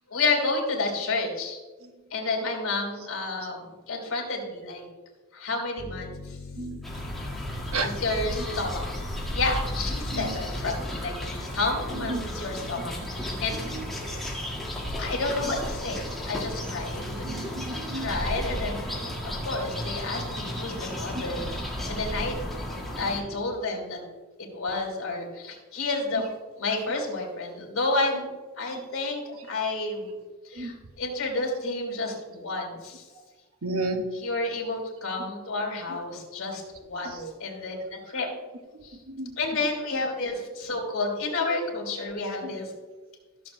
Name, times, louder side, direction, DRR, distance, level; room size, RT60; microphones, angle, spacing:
voice 1, 0.1-1.6 2.1-4.8 5.3-6.4 7.8-8.9 9.3-13.6 15.0-17.2 17.7-18.8 19.2-22.3 23.0-24.0 24.4-26.2 26.6-28.3 28.6-30.1 30.4-33.1 34.2-38.3 38.8-39.0 39.4-42.7, left 3 dB, 65° left, 0 dB, 3.2 m, -30 dB
Piano, 5.8-18.0, left 4 dB, 85° left, 1.5 m, -44 dB
sound 1, 6.8-23.2, equal, ahead, 1.7 m, -33 dB
voice 2, 7.7-8.2 10.1-10.4 11.9-12.3 13.0-13.1 13.6-14.2 15.4-15.6 17.2-18.1 21.1-21.2 23.3-23.4 30.5-30.7 33.6-34.0 35.9-36.0 37.0-37.3 39.1-39.3 42.4-42.6, right 2 dB, 75° right, 5 dB, 1.0 m, -33 dB
15.0 x 7.2 x 2.7 m, 1.3 s
head